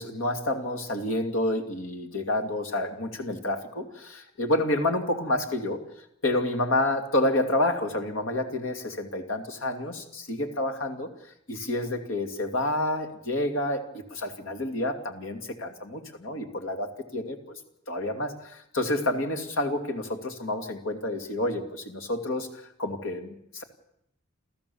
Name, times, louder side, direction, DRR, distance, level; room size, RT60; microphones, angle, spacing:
voice 1, 0.0-5.8 6.2-11.1 11.5-17.6 17.9-23.6, left 1 dB, 80° left, 5 dB, 2.7 m, -29 dB
28.5 x 14.5 x 7.1 m, 0.78 s
head